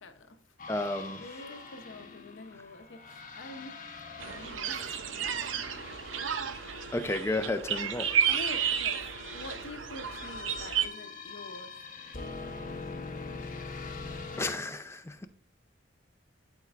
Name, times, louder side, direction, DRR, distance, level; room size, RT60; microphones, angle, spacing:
voice 1, 0.0-0.4 0.7-3.8 4.3-5.0 5.4-5.5 8.3-11.7, left 2 dB, 75° left, 0.7 m, -46 dB
sound 1, 0.6-14.5, left 4 dB, 45° left, 0.9 m, -44 dB
voice 2, 0.7-1.2 6.9-8.1 14.4-15.3, left 2 dB, 15° left, 0.4 m, -32 dB
sound 2, 4.2-10.9, right 8 dB, 85° right, 0.6 m, -32 dB
11.0 x 4.4 x 2.4 m
head